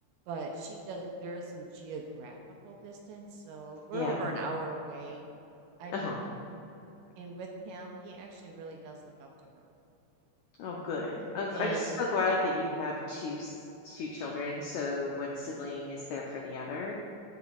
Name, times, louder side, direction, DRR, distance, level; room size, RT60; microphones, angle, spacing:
voice 1, 0.3-2.4 2.6-5.2 5.8-6.0 7.2-9.5 11.5-12.0, right 3 dB, 80° right, 1 dB, 2.1 m, -40 dB
voice 2, 3.9-4.3 5.9-6.2 10.6-13.5 13.8-17.0, left 3 dB, 85° left, -2 dB, 1.6 m, -33 dB
15.5 x 5.1 x 2.4 m, 2.9 s
omnidirectional pair, 4.2 m